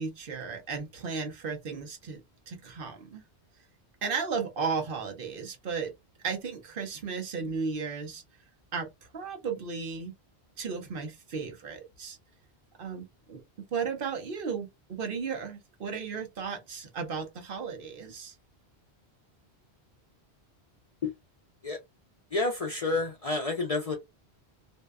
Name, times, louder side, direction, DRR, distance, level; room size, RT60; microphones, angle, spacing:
voice 1, 0.0-2.2 2.5-3.2 4.0-5.9 6.2-8.2 8.7-10.1 10.6-12.2 12.8-13.4 13.7-18.3, right 5 dB, 60° right, 0.8 m, -35 dB
voice 2, 22.3-24.0, left 3 dB, 45° left, 0.5 m, -29 dB
2.6 x 2.1 x 2.2 m
omnidirectional pair, 1.1 m